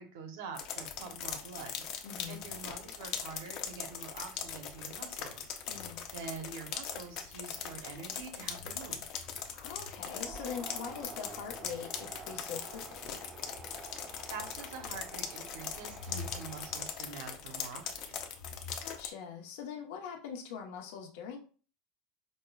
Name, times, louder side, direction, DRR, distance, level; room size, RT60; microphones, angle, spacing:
voice 1, 0.0-1.7 2.3-5.6 6.1-9.0 13.9-18.2, right 5 dB, 80° right, 5 dB, 0.8 m, -46 dB
sound 1, 0.5-19.1, left 7 dB, 50° left, 0.5 m, -41 dB
voice 2, 2.0-2.4 5.7-6.1 9.5-13.1 18.8-21.4, left 7 dB, 75° left, 1 dB, 0.9 m, -43 dB
sound 2, 10.0-17.2, right 4 dB, 20° right, 0.4 m, -50 dB
5.2 x 2.2 x 2.3 m, 0.38 s
supercardioid pair, 155°, 0 cm